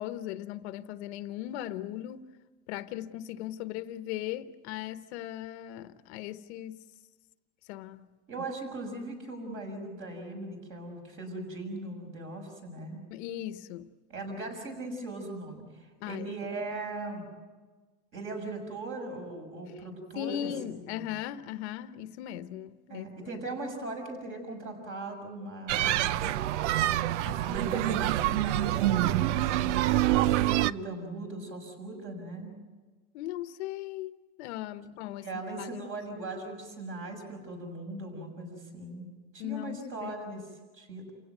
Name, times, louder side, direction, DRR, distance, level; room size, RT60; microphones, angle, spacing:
voice 1, 0.0-2.3 2.7-6.8 7.7-8.1 8.3-8.4 13.1-13.9 16.0-16.3 20.1-23.3 33.1-35.3 35.6-36.0 39.4-40.1, left 13 dB, 70° left, 1.1 m, -38 dB
voice 2, 8.3-13.0 14.1-17.3 18.1-21.0 22.9-26.3 27.2-30.0 30.2-32.5 35.2-39.1 39.3-40.4 40.7-41.1, right 2 dB, 35° right, 6.5 m, -39 dB
sound 1, 25.7-30.7, right 14 dB, 90° right, 0.7 m, -26 dB
28.5 x 16.5 x 9.3 m
supercardioid pair, 150°, 34 cm